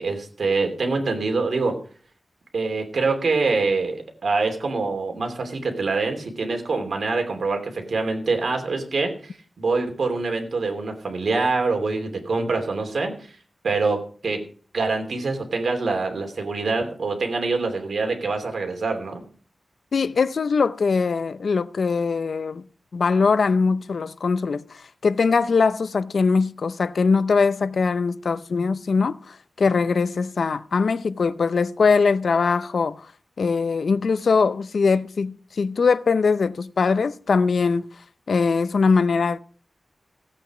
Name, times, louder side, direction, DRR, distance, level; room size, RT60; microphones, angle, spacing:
voice 1, 0.0-1.7 2.5-13.1 13.6-14.4 14.7-19.2, right 3 dB, 75° right, 2.9 m, -25 dB
voice 2, 19.9-22.6 22.9-33.1 33.4-37.8 38.3-39.4, left 4 dB, 75° left, 0.6 m, -21 dB
16.0 x 8.5 x 4.9 m
wide cardioid pair, 125°, 0 cm